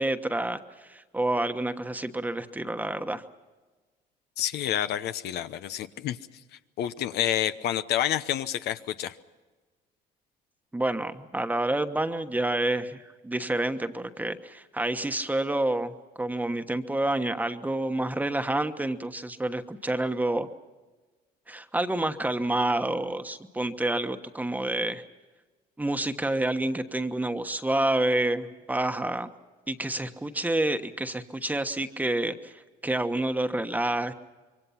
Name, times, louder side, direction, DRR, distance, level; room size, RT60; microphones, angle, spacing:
voice 1, 0.0-3.2 10.7-20.5 21.5-25.0 25.8-29.3 29.7-32.5 32.8-34.1, right 1 dB, 10° right, 8 dB, 1.2 m, -28 dB
voice 2, 4.4-6.2 6.8-9.2, left 11 dB, 75° left, 11 dB, 0.9 m, -28 dB
26.5 x 23.0 x 5.8 m, 1.3 s
cardioid pair, 110°, 17 cm